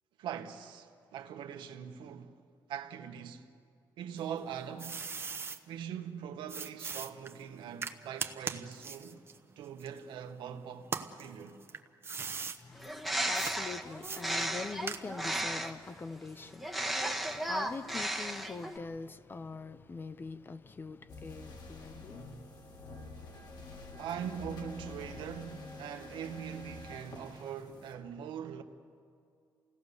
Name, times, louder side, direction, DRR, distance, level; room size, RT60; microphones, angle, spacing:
voice 1, 0.2-2.4 2.7-3.5 4.0-5.1 5.7-9.2 9.6-10.9 11.2-11.6 23.9-28.6, right 8 dB, 85° right, 1.5 m, -42 dB
sound 1, 4.2-5.6 6.5-10.4 10.8-12.6 13.3-13.6 14.0-15.4, right 5 dB, 30° right, 1.1 m, -40 dB
voice 2, 12.6-24.0, left 4 dB, 25° left, 0.6 m, -44 dB
Bird, 12.8-15.9 16.6-18.8, right 1 dB, ahead, 1.3 m, -35 dB
sound 2, 21.1-27.9, left 2 dB, 60° left, 3.2 m, -48 dB
28.0 x 17.5 x 7.0 m
cardioid pair, 125°, 8 cm